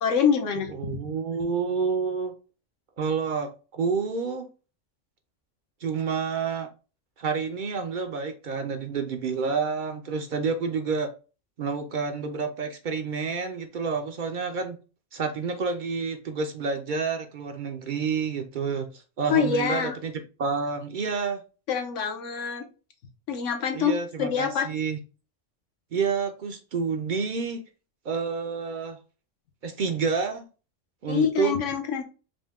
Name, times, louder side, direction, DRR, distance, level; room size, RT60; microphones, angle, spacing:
voice 1, 0.0-1.0 19.3-20.0 21.7-22.7 23.3-24.7 31.1-32.0, left 7 dB, 80° left, 1.1 m, -25 dB
voice 2, 0.7-2.3 3.0-4.5 5.8-6.7 7.2-11.1 11.6-14.8 15.1-20.1 20.4-21.4 23.7-25.0 25.9-27.6 28.1-29.0 29.6-30.4 31.0-31.5, right 5 dB, 55° right, 0.5 m, -29 dB
5.1 x 2.1 x 3.5 m
omnidirectional pair, 1.3 m